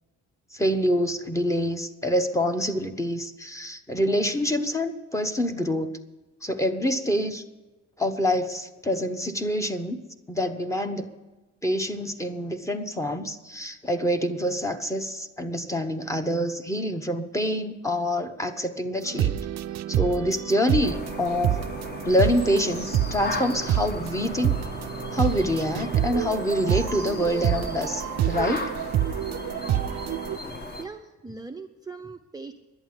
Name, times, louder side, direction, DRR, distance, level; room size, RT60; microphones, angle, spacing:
voice 1, 0.5-6.0 6.4-7.4 8.0-10.0 10.3-11.1 11.6-19.4 19.9-21.6 22.0-24.5 25.1-28.7 30.4-30.6, equal, 10° left, 7 dB, 1.1 m, -26 dB
sound 1, 19.0-30.4, right 11 dB, 60° right, 0.6 m, -28 dB
sound 2, 20.8-30.8, left 2 dB, 35° left, 1.6 m, -36 dB
voice 2, 30.8-32.5, right 4 dB, 15° right, 4 dB, 0.6 m, -40 dB
11.0 x 8.7 x 9.7 m, 1.1 s
cardioid pair, 90°, 30 cm